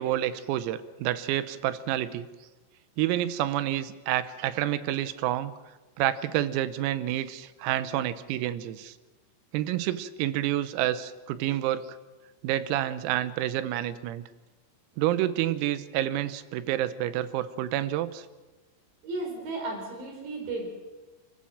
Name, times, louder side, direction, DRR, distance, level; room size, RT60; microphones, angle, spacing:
voice 1, 0.0-2.3 3.0-5.6 6.0-9.0 9.5-12.0 12.4-14.2 15.0-18.3, right 13 dB, 90° right, 13 dB, 3.7 m, -29 dB
voice 2, 19.0-20.7, right 2 dB, 60° right, 2 dB, 6.1 m, -34 dB
29.5 x 15.0 x 7.3 m, 1.2 s
omnidirectional pair, 6.0 m